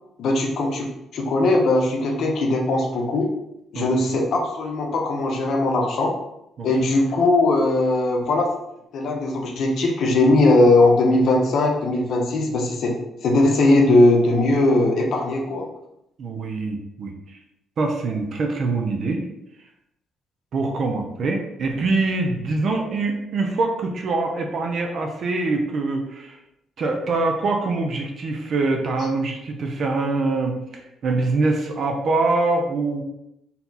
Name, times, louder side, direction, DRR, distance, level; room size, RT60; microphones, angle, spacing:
voice 1, 0.2-0.9 1.1-3.3 3.7-6.1 6.6-8.5 8.9-12.9 13.2-15.6, left 2 dB, 70° left, 1 dB, 0.9 m, -19 dB
voice 2, 3.7-4.2 6.6-6.7 16.2-17.1 17.8-19.2 20.5-26.4 26.8-33.0, right 3 dB, 60° right, 3 dB, 0.7 m, -24 dB
4.2 x 2.3 x 4.1 m, 0.84 s
cardioid pair, 90°, 0 cm